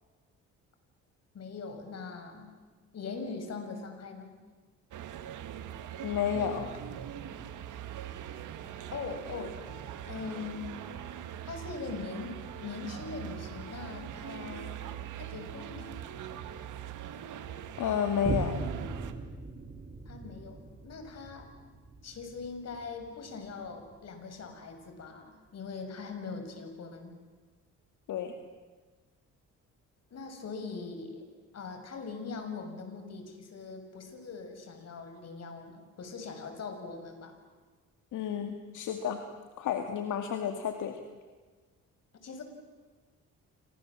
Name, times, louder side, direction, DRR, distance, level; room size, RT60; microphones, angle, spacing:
voice 1, 1.3-2.5 2.9-4.4 8.9-9.6 10.1-10.7 11.4-14.8 15.2-16.0 20.1-21.5 22.0-27.1 30.1-31.2 31.5-37.3 42.2-42.4, left 4 dB, 55° left, 6 dB, 6.4 m, -41 dB
sound 1, 4.9-19.1, right 10 dB, 80° right, 2.2 m, -42 dB
voice 2, 6.0-6.7 17.8-18.5 28.1-28.3 38.1-39.2 39.6-41.0, left 8 dB, 80° left, 5 dB, 2.3 m, -31 dB
Boom, 18.2-25.2 25.7-25.8, right 3 dB, 25° right, 4.0 m, -40 dB
30.0 x 26.0 x 7.6 m, 1.4 s
cardioid pair, 90°, 30 cm